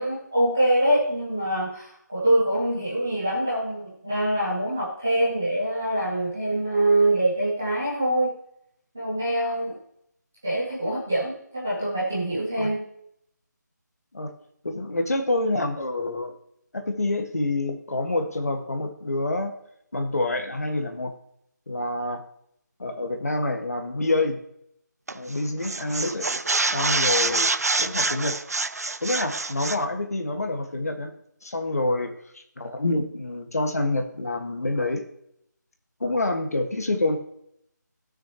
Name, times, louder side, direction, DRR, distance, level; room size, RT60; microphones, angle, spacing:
voice 1, 0.0-8.3 8.9-9.8 10.4-12.8, right 1 dB, 5° right, -8 dB, 0.5 m, -24 dB
voice 2, 14.6-16.3 16.7-19.5 19.9-21.1 21.7-22.2 22.8-24.4 25.1-26.3 26.7-27.5 27.8-28.4 29.0-31.1 31.4-35.0 36.0-37.2, left 2 dB, 55° left, 5 dB, 1.6 m, -27 dB
sound 1, 25.1-25.3 25.6-29.8, right 3 dB, 55° right, 0.5 m, -26 dB
17.0 x 6.5 x 3.0 m, 0.71 s
figure-of-eight pair, 180°, 10 cm